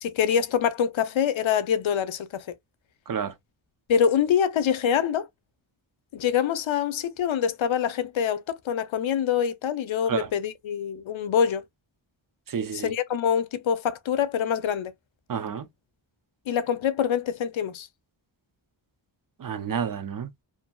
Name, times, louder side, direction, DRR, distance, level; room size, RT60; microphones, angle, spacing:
voice 1, 0.0-2.6 3.9-5.3 6.1-11.6 12.7-14.9 16.5-17.9, left 8 dB, 80° left, 0.6 m, -25 dB
voice 2, 12.5-12.9 15.3-15.7 19.4-20.3, right 7 dB, 45° right, 0.6 m, -30 dB
2.7 x 2.6 x 2.2 m
wide cardioid pair, 100°, 46 cm